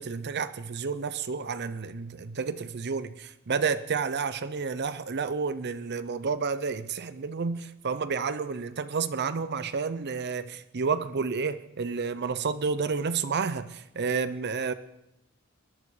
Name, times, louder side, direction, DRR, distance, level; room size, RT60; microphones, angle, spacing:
voice 1, 0.0-14.7, right 5 dB, 50° right, 0.6 m, -30 dB
20.5 x 11.5 x 4.9 m
head